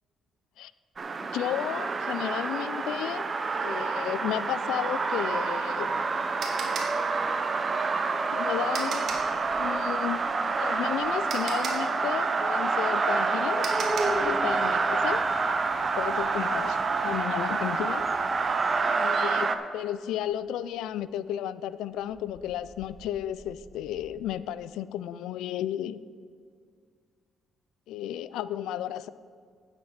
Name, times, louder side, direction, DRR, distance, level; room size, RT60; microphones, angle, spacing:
sound 1, 1.0-19.6, right 4 dB, 35° right, 0.7 m, -28 dB
voice 1, 1.3-3.3 3.6-5.9 8.3-9.0 9.6-10.2 10.6-13.7 14.1-15.3 15.8-16.8 17.0-18.0 18.9-26.0 27.9-29.1, left 11 dB, 90° left, 16 dB, 0.3 m, -33 dB
sound 2, 5.5-9.4 10.8-10.9 11.3-14.3, right 4 dB, 60° right, 1.8 m, -38 dB
sound 3, 9.1-9.8 10.1-11.3 12.8-19.0 20.3-20.4 21.0-21.1 22.1-24.3, right 1 dB, 15° right, 2.1 m, -40 dB
9.6 x 7.7 x 5.7 m, 2.1 s
cardioid pair, 90°, 0 cm